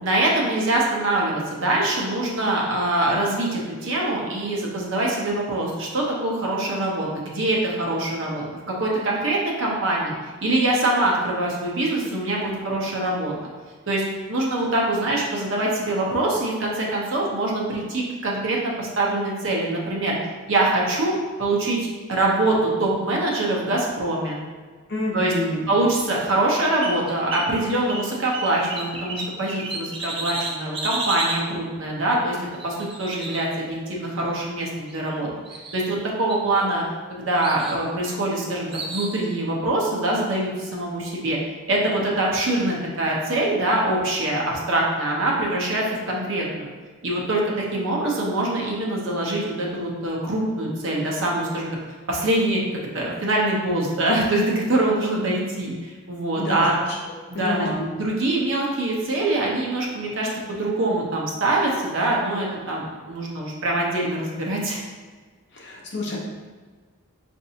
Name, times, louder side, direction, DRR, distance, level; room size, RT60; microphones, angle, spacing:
voice 1, 0.0-13.3 13.9-14.0 14.3-20.2 20.5-21.1 21.4-21.8 22.1-24.4 25.1-25.3 25.7-32.4 32.6-35.3 35.7-36.8 37.1-41.4 41.7-46.7 47.0-51.7 52.1-52.6 52.9-56.8 57.3-57.7 58.0-64.8, right 2 dB, 60° right, -3 dB, 0.8 m, -24 dB
voice 2, 24.9-25.7 56.4-57.9 65.5-66.2, left 1 dB, 50° left, -4 dB, 0.8 m, -29 dB
sound 1, 26.4-27.5 27.9-31.4 32.5-34.0 34.9-35.2 35.4-36.0 36.3-37.0 37.4-37.8 38.7-39.2, right 2 dB, 25° right, 0.4 m, -32 dB
5.2 x 2.6 x 2.8 m, 1.4 s
head